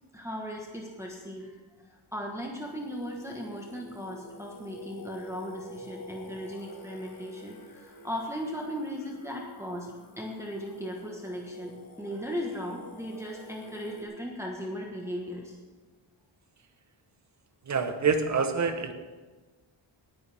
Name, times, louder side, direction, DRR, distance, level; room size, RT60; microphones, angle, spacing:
voice 1, 0.1-1.5 2.1-9.9 10.2-11.7 12.0-15.6, equal, 5° right, -1 dB, 1.3 m, -37 dB
Singing, 2.6-14.0, left 1 dB, 45° left, 1.5 m, -48 dB
voice 2, 17.6-18.9, right 5 dB, 35° right, 7 dB, 1.0 m, -26 dB
18.5 x 9.7 x 3.5 m, 1.3 s
wide cardioid pair, 160°, 47 cm